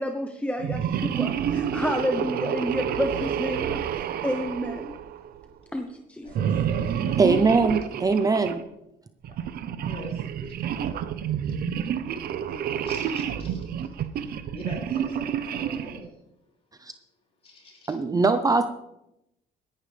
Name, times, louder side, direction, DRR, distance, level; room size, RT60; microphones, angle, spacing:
voice 1, 0.0-3.8 4.2-4.9 5.7-6.3, equal, 5° left, 4 dB, 1.0 m, -30 dB
sound 1, 0.6-5.4 6.3-8.6 9.2-16.1, right 9 dB, 65° right, 0.9 m, -29 dB
voice 2, 6.2-7.4 8.0-8.1 9.8-10.1 12.3-13.7 14.5-16.1 17.4-17.9, left 2 dB, 35° left, -2 dB, 5.9 m, -43 dB
voice 3, 7.2-8.6 16.8-16.9 17.9-18.7, right 4 dB, 20° right, 8 dB, 0.7 m, -21 dB
17.0 x 11.5 x 3.5 m, 0.86 s
cardioid pair, 110°, 17 cm